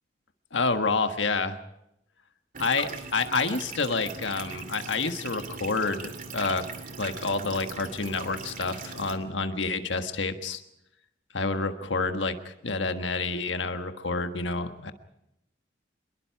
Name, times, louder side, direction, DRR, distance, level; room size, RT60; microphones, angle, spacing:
voice 1, 0.5-1.6 2.6-6.7 7.0-10.6 11.3-14.9, left 3 dB, 70° left, 7 dB, 1.5 m, -28 dB
sound 1, 2.5-9.1, right 4 dB, 45° right, 2.6 m, -40 dB
26.0 x 22.0 x 4.7 m, 0.81 s
head